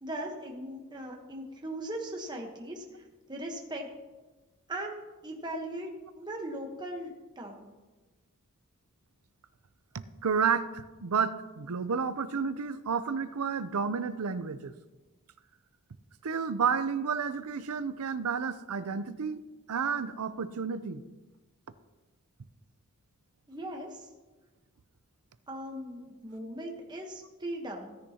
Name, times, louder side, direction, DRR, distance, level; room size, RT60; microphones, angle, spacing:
voice 1, 0.0-3.9 4.7-7.7 23.5-24.1 25.5-28.0, right 1 dB, 20° right, 0 dB, 1.1 m, -39 dB
voice 2, 10.2-14.7 16.2-19.4 19.7-21.0, right 6 dB, 85° right, 13 dB, 0.6 m, -31 dB
16.5 x 9.9 x 2.9 m, 1.2 s
head